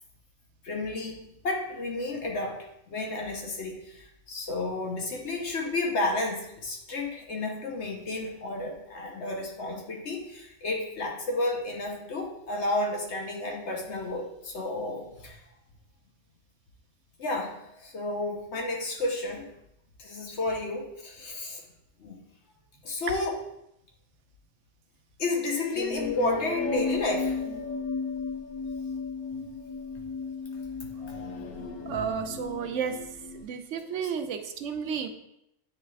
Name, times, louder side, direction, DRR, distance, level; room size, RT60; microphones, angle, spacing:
voice 1, 0.6-2.6 2.9-15.4 17.2-19.5 20.0-21.6 22.0-22.2 22.8-23.4 25.2-27.4 31.1-31.2 34.0-34.1, left 2 dB, 65° left, 1 dB, 1.2 m, -31 dB
sound 1, 25.7-33.4, left 4 dB, 90° left, 1.1 m, -34 dB
voice 2, 31.9-33.0 33.3-35.1, right 7 dB, 75° right, 7 dB, 1.0 m, -32 dB
8.5 x 3.3 x 3.3 m, 0.81 s
omnidirectional pair, 1.3 m